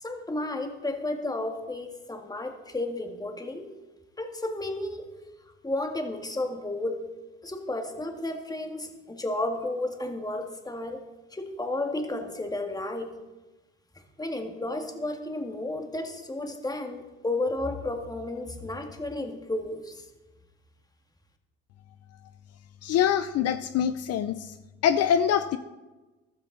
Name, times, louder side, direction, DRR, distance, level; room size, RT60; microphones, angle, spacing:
voice 1, 0.0-3.7 4.2-5.1 5.6-7.0 7.4-11.0 11.3-13.2 14.2-20.0, left 2 dB, 10° left, 5 dB, 1.9 m, -32 dB
voice 2, 22.8-24.5 24.8-25.6, left 9 dB, 55° left, 11 dB, 0.7 m, -24 dB
14.5 x 12.5 x 4.0 m, 1.2 s
supercardioid pair, 90°, 30 cm